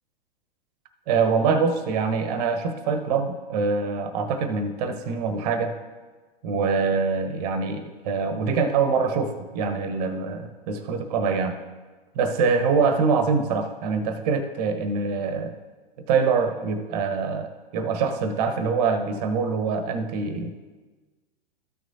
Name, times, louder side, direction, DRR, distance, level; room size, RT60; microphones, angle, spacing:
voice 1, 1.1-5.8 6.4-11.6 12.1-15.5 16.1-20.5, right 5 dB, 45° right, 8 dB, 1.0 m, -24 dB
14.0 x 6.3 x 2.7 m, 1.3 s
figure-of-eight pair, 100°, 29 cm